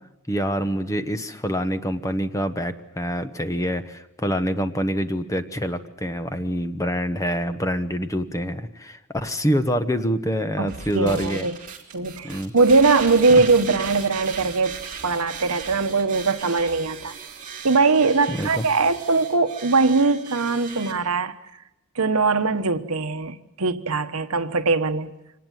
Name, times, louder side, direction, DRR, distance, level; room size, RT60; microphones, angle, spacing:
voice 1, 0.3-11.5 12.2-12.5 13.3-13.4 18.3-18.7, equal, 15° left, 1.1 m, -26 dB
voice 2, 10.6-11.6 11.9-17.1 17.6-21.3 22.0-25.1, right 3 dB, 75° right, 1.1 m, -21 dB
sound 1, 10.7-20.9, right 6 dB, 35° right, 3.2 m, -37 dB
25.0 x 19.0 x 9.1 m
head